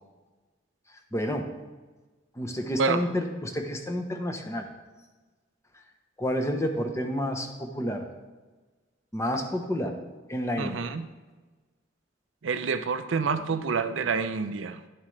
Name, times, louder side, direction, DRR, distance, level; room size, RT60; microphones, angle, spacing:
voice 1, 1.1-1.5 2.4-4.6 6.2-8.1 9.1-10.0 10.3-10.9, equal, 15° left, 0.8 m, -30 dB
voice 2, 10.6-11.1 12.4-14.8, right 5 dB, 85° right, 0.5 m, -28 dB
10.5 x 7.4 x 3.2 m
head